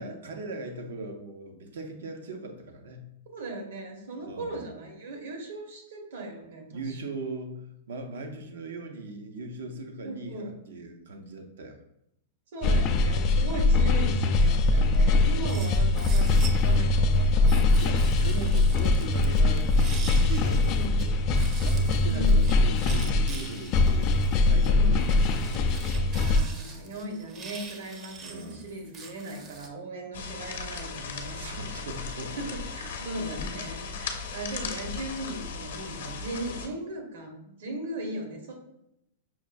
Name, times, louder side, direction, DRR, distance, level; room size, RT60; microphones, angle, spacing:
voice 1, 0.0-3.1 4.2-4.7 6.7-11.8 17.3-21.2 21.6-26.1 28.2-28.7 31.3-32.6 33.2-33.3, right 2 dB, 85° right, 5 dB, 0.6 m, -39 dB
voice 2, 3.3-7.0 10.0-10.5 12.5-18.0 20.7-21.0 22.0-22.4 24.7-25.1 26.1-31.4 32.4-38.6, right 1 dB, 70° right, 2 dB, 1.1 m, -38 dB
sound 1, 12.6-26.4, left 2 dB, 30° left, 0.3 m, -22 dB
sound 2, 15.5-16.8 17.5-21.0 21.3-29.7, right 4 dB, 25° right, 0.5 m, -45 dB
sound 3, 30.1-36.7, left 5 dB, 75° left, 0.6 m, -37 dB
5.7 x 2.3 x 2.5 m, 0.79 s
supercardioid pair, 155°, 0 cm